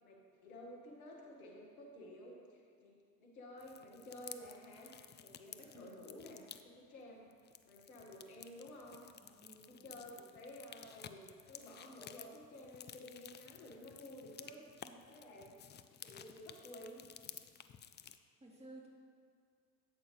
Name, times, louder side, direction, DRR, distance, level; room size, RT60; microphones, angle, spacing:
voice 1, 0.0-3.0 3.2-7.3 7.6-9.0 9.5-15.5 16.0-17.0, left 1 dB, 80° left, -2 dB, 1.7 m, -53 dB
sound 1, 3.6-6.6 7.3-18.2, left 9 dB, 25° left, 0.5 m, -54 dB
voice 2, 9.1-10.0 14.8-15.3 18.4-18.9, right 2 dB, 15° right, -4 dB, 2.8 m, -57 dB
13.0 x 8.2 x 3.2 m, 2.1 s
hypercardioid pair, 65°, 42 cm